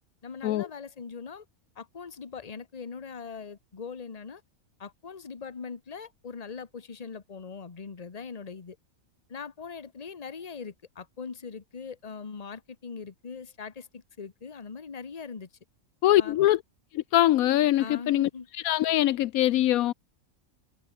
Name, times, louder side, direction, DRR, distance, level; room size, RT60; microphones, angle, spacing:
voice 1, 0.2-1.4 1.8-4.4 4.8-8.8 9.3-15.5 16.2-16.4 17.8-18.5, left 5 dB, 30° left, 1.2 m, -41 dB
voice 2, 16.0-16.6 16.9-18.3 18.6-19.9, left 14 dB, 80° left, 1.0 m, -23 dB
omnidirectional pair, 1.5 m